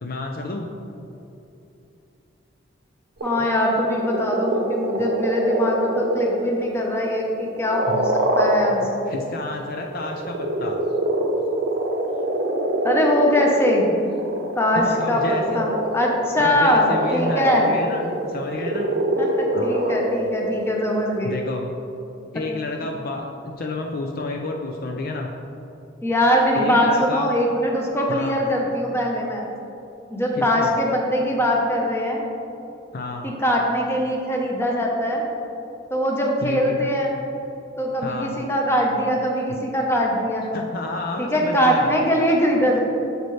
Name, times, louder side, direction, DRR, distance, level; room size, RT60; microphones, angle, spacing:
voice 1, 0.0-0.7 7.9-8.0 9.1-10.8 14.8-15.6 16.4-18.9 19.5-20.0 21.2-21.7 22.3-25.3 26.5-27.3 28.1-28.4 30.4-30.7 32.9-33.3 36.4-36.8 38.0-38.3 40.5-41.9, left 2 dB, 50° left, 2 dB, 0.5 m, -30 dB
voice 2, 3.2-9.1 12.8-13.9 14.5-17.7 19.2-21.4 22.3-22.4 22.8-22.9 26.0-29.4 30.1-32.2 33.2-35.2 35.9-37.2 37.8-40.5 41.2-42.8, equal, 15° left, -1 dB, 0.9 m, -22 dB
sound 1, 3.2-9.2 9.8-21.2, right 1 dB, 55° right, 0.8 m, -25 dB
8.2 x 6.7 x 3.2 m, 2.8 s
head